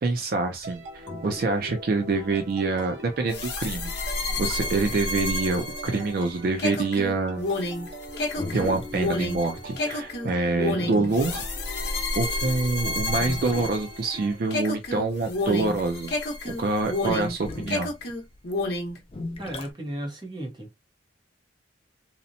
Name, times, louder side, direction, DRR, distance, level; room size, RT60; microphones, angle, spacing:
voice 1, 0.0-3.9 4.4-7.5 8.5-11.4 12.1-16.1 16.4-17.9, right 3 dB, 50° right, 0.4 m, -26 dB
sound 1, 0.6-14.4, equal, 70° right, 0.9 m, -43 dB
sound 2, 0.7-5.0 5.4-12.3 12.7-16.2 16.5-19.7, left 2 dB, 30° left, 0.4 m, -39 dB
sound 3, 3.3-14.2 14.5-17.4 17.7-19.0, left 2 dB, 55° left, 0.8 m, -30 dB
voice 2, 19.4-20.7, right 1 dB, 25° right, 0.7 m, -34 dB
2.8 x 2.1 x 2.5 m
head